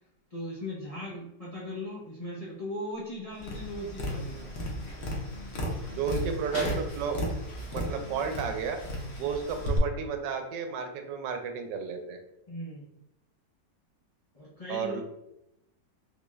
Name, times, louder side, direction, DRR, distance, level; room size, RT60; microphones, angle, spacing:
voice 1, 0.3-4.5 5.8-6.0 12.5-12.8 14.3-15.0, left 1 dB, 70° left, -8 dB, 0.3 m, -38 dB
Tap, 3.4-9.8, equal, 55° left, 0.8 m, -35 dB
voice 2, 5.9-7.2 7.7-8.8 9.2-12.2 14.7-15.0, right 6 dB, 85° right, 5 dB, 1.2 m, -32 dB
3.9 x 2.3 x 3.1 m, 0.85 s
omnidirectional pair, 1.9 m